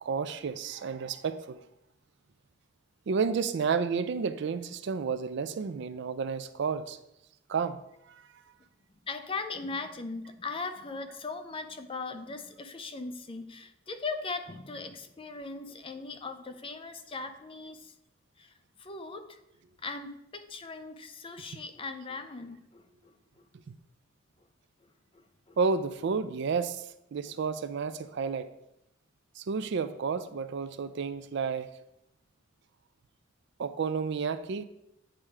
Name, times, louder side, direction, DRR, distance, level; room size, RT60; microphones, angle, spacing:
voice 1, 0.0-1.6 3.1-7.0 7.5-7.8 8.1-8.2 23.7-23.8 25.6-28.5 29.4-31.7 33.6-34.6, right 5 dB, 60° right, 12 dB, 0.4 m, -31 dB
voice 2, 9.1-17.9 18.4-19.4 19.8-23.4 25.1-25.6 27.2-27.4, left 3 dB, 30° left, 8 dB, 0.5 m, -39 dB
8.8 x 3.3 x 4.8 m, 0.83 s
head